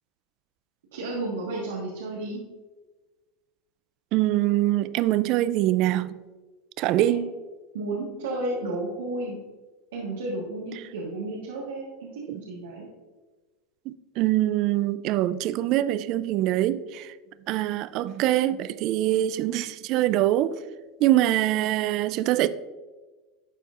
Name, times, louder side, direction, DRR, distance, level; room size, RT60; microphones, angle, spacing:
voice 1, 0.9-2.4 7.1-7.3 7.7-9.4 9.9-12.8, right 2 dB, 85° right, 1.6 m, -32 dB
voice 2, 4.1-6.1 6.8-7.2 13.9-17.1 17.5-20.5 21.0-22.5, right 14 dB, 55° right, 0.4 m, -24 dB
12.5 x 4.4 x 2.5 m
hypercardioid pair, 100°, 0 cm